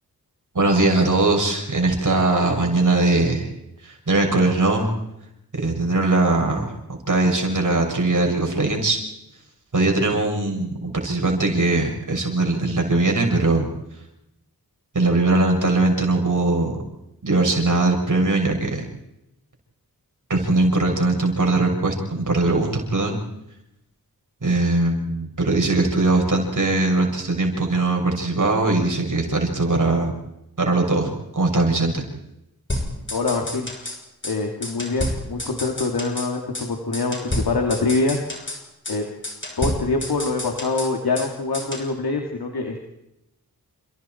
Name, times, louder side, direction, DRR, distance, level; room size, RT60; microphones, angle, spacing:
voice 1, 0.5-3.5 3.8-4.9 5.5-6.7 7.1-9.0 9.7-13.7 14.9-16.8 17.2-18.9 20.3-23.2 24.4-30.1 30.6-32.0, right 2 dB, 55° right, 1 dB, 6.8 m, -20 dB
sound 1, 32.7-34.0 34.2-34.4 34.6-36.3 36.5-36.7 36.9-38.6 38.8-39.0 39.2-41.3 41.5-41.9, left 1 dB, 30° left, 6.9 m, -30 dB
voice 2, 33.1-33.7 34.2-38.2 38.9-39.0 39.6-42.9, left 3 dB, 80° left, 2 dB, 2.9 m, -24 dB
29.0 x 29.0 x 4.6 m, 0.87 s
wide cardioid pair, 65°, 37 cm